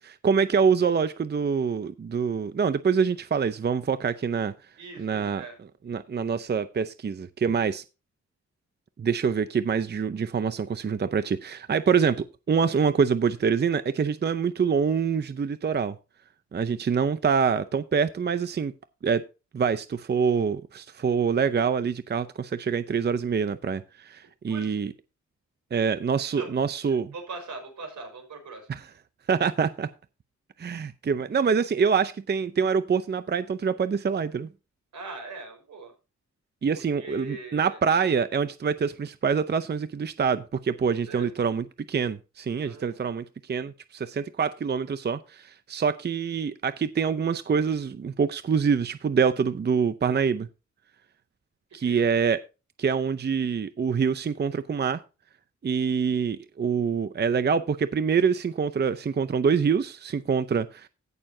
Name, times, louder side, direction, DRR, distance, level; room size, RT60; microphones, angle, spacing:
voice 1, 0.1-4.5 5.0-5.4 5.9-7.8 9.0-16.0 16.5-18.7 19.0-19.2 19.5-24.9 25.7-27.1 28.7-28.8 29.3-29.9 30.6-34.5 36.6-50.5 51.7-52.4 52.8-55.0 55.6-60.9, right 6 dB, 35° right, 0.6 m, -25 dB
voice 2, 4.8-5.6 24.5-24.8 26.4-26.5 26.8-28.7 34.9-35.9 37.0-37.8 41.1-41.3 42.6-43.0 51.8-52.0, right 3 dB, 85° right, 4.8 m, -41 dB
16.5 x 6.8 x 2.7 m
wide cardioid pair, 120°, 29 cm